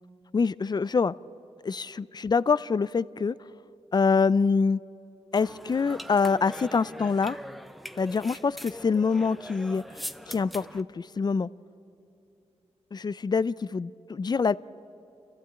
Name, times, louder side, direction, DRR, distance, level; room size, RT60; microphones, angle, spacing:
voice 1, 0.3-1.1 1.6-3.3 3.9-4.8 5.3-7.4 8.0-11.5 12.9-14.5, left 5 dB, 35° left, 18 dB, 0.4 m, -25 dB
sound 1, 5.3-10.8, equal, ahead, 0.7 m, -42 dB
28.0 x 14.5 x 8.8 m, 2.8 s
cardioid pair, 85°, 12 cm